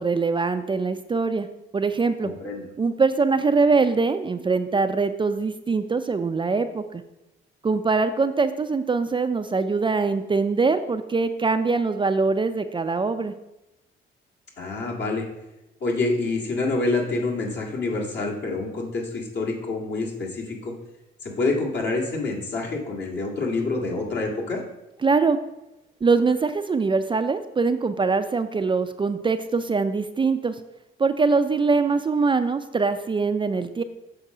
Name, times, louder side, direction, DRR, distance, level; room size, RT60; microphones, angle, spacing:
voice 1, 0.0-1.5 1.7-2.3 2.8-7.0 7.6-13.3 25.0-25.4 26.0-30.6 31.0-33.8, right 4 dB, 25° right, 9 dB, 0.4 m, -23 dB
voice 2, 2.2-2.6 14.6-15.3 15.8-20.7 21.2-24.6, left 3 dB, 60° left, -2 dB, 2.0 m, -27 dB
6.8 x 5.3 x 4.9 m, 0.94 s
cardioid pair, 90°, 20 cm